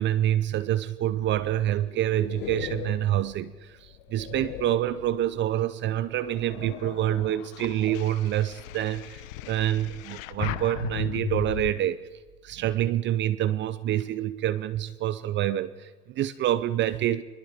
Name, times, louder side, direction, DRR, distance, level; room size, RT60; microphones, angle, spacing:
voice 1, 0.0-12.0 12.4-17.2, right 12 dB, 25° right, 15 dB, 0.6 m, -27 dB
sound 1, 1.4-5.6 6.1-11.7, left 14 dB, 55° left, 1.1 m, -38 dB
24.5 x 21.5 x 5.1 m, 1.2 s
hypercardioid pair, 125°, 47 cm